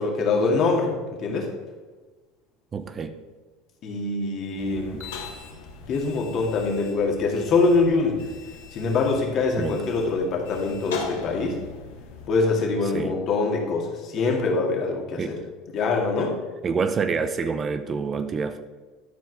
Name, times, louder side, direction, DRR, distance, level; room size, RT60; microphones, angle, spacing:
voice 1, 0.0-1.5 3.8-5.0 5.9-8.2 8.7-11.6 12.3-15.4 15.7-16.4, left 3 dB, 50° left, 1 dB, 2.2 m, -24 dB
voice 2, 2.7-3.2 4.9-5.0 9.6-9.8 12.9-13.1 15.2-15.4 16.6-18.6, right 5 dB, 30° right, 10 dB, 0.6 m, -27 dB
sound 1, 4.6-12.3, left 5 dB, 80° left, 1.5 m, -40 dB
12.0 x 4.7 x 4.8 m, 1.3 s
hypercardioid pair, 85°, 0 cm